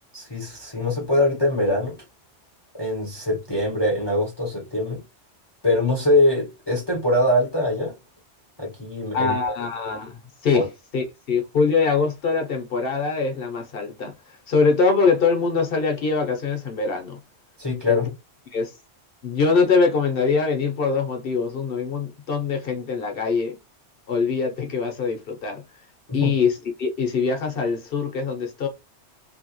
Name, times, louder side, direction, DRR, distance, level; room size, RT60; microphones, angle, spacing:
voice 1, 0.1-2.0 2.8-5.0 5.6-7.9 8.6-9.4 10.5-10.6 17.6-18.1 26.2-26.3, left 1 dB, 25° left, 0.7 m, -22 dB
voice 2, 9.1-10.7 10.9-14.1 14.5-17.2 17.9-18.1 18.5-18.7 19.2-23.6 24.1-25.6 26.1-28.7, left 4 dB, 55° left, 1.0 m, -23 dB
3.0 x 2.7 x 2.9 m
omnidirectional pair, 1.2 m